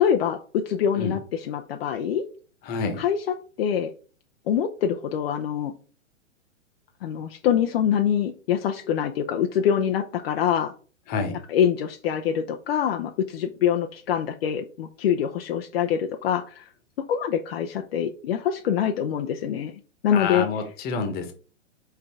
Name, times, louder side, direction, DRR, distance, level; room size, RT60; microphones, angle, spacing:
voice 1, 0.0-2.2 3.0-3.9 4.5-5.7 7.0-10.7 11.5-16.7 17.1-19.7 20.0-20.5, left 9 dB, 50° left, 5 dB, 0.7 m, -25 dB
voice 2, 2.6-3.0 11.1-11.4 20.1-21.3, left 5 dB, 25° left, 6 dB, 1.3 m, -28 dB
5.6 x 3.8 x 4.7 m, 0.39 s
hypercardioid pair, 125°, 38 cm